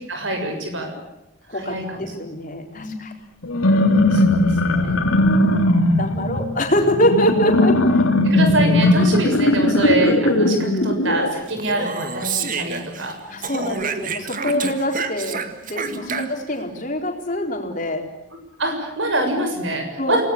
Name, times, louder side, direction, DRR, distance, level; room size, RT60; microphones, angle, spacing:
voice 1, 0.1-1.0 1.5-2.1 2.7-3.0 4.1-5.1 6.1-6.5 8.0-13.4 13.7-13.8 14.4-14.6 15.8-16.2 18.6-20.2, right 1 dB, 65° right, 5 dB, 7.0 m, -25 dB
voice 2, 1.5-3.1 4.3-4.4 4.7-5.6 6.0-7.8 13.3-18.0 20.0-20.2, equal, 40° left, 2 dB, 4.1 m, -24 dB
sound 1, 3.4-11.3, left 1 dB, 90° left, 3.4 m, -18 dB
Speech, 11.5-13.1 13.4-16.6, right 5 dB, 40° right, 1.7 m, -29 dB
28.5 x 19.0 x 8.7 m, 0.89 s
head